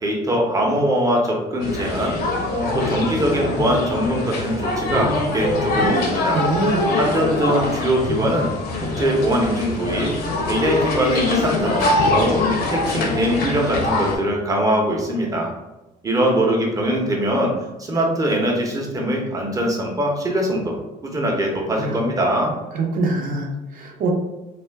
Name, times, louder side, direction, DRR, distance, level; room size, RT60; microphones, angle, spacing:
voice 1, 0.0-2.2 2.5-6.4 6.9-8.5 8.8-10.1 10.5-15.5 16.0-17.5 17.8-20.7 21.0-22.5, right 1 dB, 20° right, -1 dB, 0.7 m, -22 dB
sound 1, 1.6-14.2, left 2 dB, 65° left, 0.7 m, -23 dB
voice 2, 6.3-7.0 21.7-22.0 22.7-24.1, right 2 dB, 55° right, 1 dB, 0.7 m, -24 dB
2.4 x 2.2 x 3.3 m, 1.0 s
cardioid pair, 110°, 17 cm